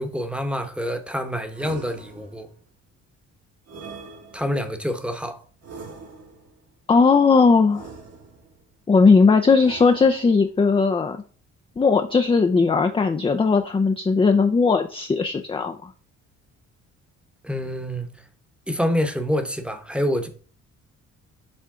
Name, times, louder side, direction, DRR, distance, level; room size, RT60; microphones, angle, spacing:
voice 1, 0.0-2.5 4.3-5.4 17.4-18.2 18.7-20.3, equal, 5° right, 1.0 m, -26 dB
sound 1, 1.5-2.6 3.7-4.7 5.6-6.6 7.7-8.6 9.6-10.5, right 4 dB, 55° right, 1.6 m, -42 dB
voice 2, 6.9-7.9 8.9-11.2 11.8-15.9, left 4 dB, 20° left, 0.5 m, -18 dB
7.5 x 3.4 x 3.7 m
cardioid pair, 90°, 30 cm